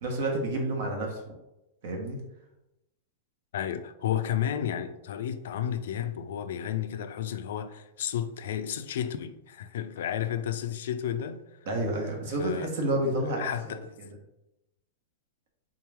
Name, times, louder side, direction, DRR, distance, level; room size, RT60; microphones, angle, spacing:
voice 1, 0.0-1.3 1.8-2.2 11.6-13.8, right 1 dB, 60° right, 1.1 m, -30 dB
voice 2, 3.5-11.4 12.4-12.7 13.4-13.9, left 10 dB, 75° left, 0.3 m, -32 dB
3.6 x 3.0 x 3.5 m
supercardioid pair, 155°, 0 cm